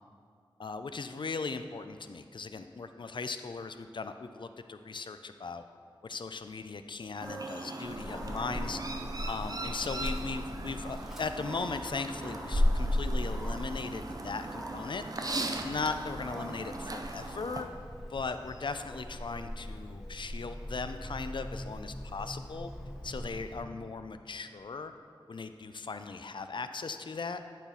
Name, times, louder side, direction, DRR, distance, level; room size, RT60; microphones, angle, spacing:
voice 1, 0.6-5.7 6.0-8.8 9.3-15.4 15.6-17.7 18.1-22.7 23.0-24.9 25.3-27.4, left 4 dB, 60° left, 9 dB, 0.3 m, -38 dB
sound 1, 7.2-10.8, right 2 dB, 20° left, 1.0 m, -51 dB
Chirp tweet, 7.2-17.6, right 2 dB, 40° right, 0.5 m, -40 dB
Dog, 7.8-23.6, left 1 dB, 5° right, 1.0 m, -37 dB
8.4 x 4.1 x 3.9 m, 2.2 s
wide cardioid pair, 70°, 9 cm